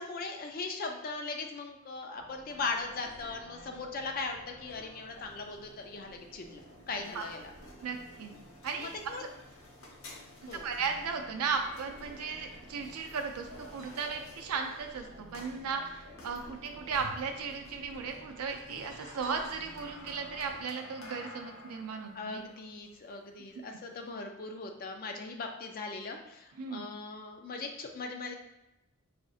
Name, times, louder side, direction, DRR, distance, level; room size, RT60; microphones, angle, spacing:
voice 1, 0.0-6.6 6.9-7.5 8.8-9.2 10.5-10.7 22.1-28.3, left 3 dB, 40° left, 3 dB, 0.4 m, -39 dB
sound 1, 2.1-20.6, equal, 55° right, 0.8 m, -54 dB
sound 2, 5.0-24.1, left 2 dB, 65° left, 0.8 m, -53 dB
voice 2, 7.8-8.3 8.6-9.0 10.5-22.4 26.6-26.8, right 5 dB, 80° right, 4 dB, 0.5 m, -36 dB
sound 3, 12.7-16.4 16.6-16.7 16.9-17.6 18.3-21.8 22.2-22.4, equal, ahead, 0.8 m, -56 dB
4.9 x 2.5 x 2.4 m, 0.89 s
head